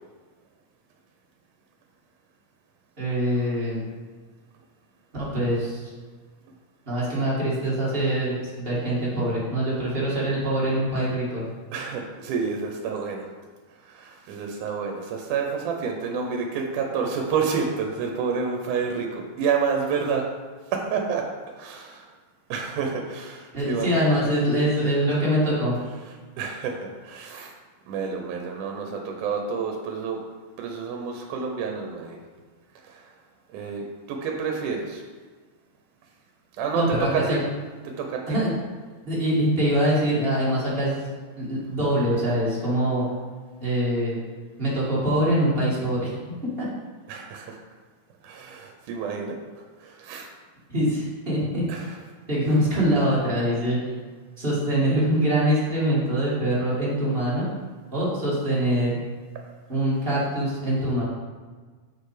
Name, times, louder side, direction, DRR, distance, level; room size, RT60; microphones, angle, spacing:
voice 1, 3.0-3.8 5.1-5.9 6.9-11.4 23.5-25.7 36.7-37.4 38.3-38.5 39.0-43.0 43.6-44.2 44.6-46.1 46.6-46.7 50.7-51.7 52.3-53.8 54.4-57.5 57.9-59.0 59.7-61.0, right 1 dB, 20° right, -7 dB, 2.0 m, -24 dB
voice 2, 11.7-13.3 13.9-20.2 20.7-21.3 21.6-22.1 22.5-23.9 25.1-25.2 26.4-27.5 27.9-30.2 30.6-32.2 32.8-33.1 33.5-35.0 36.6-36.8 37.1-37.4 38.0-38.4 47.1-47.6 48.2-49.4 49.8-50.3 51.7-51.9, right 5 dB, 85° right, 2 dB, 2.3 m, -29 dB
6.7 x 5.9 x 4.9 m, 1.4 s
omnidirectional pair, 3.5 m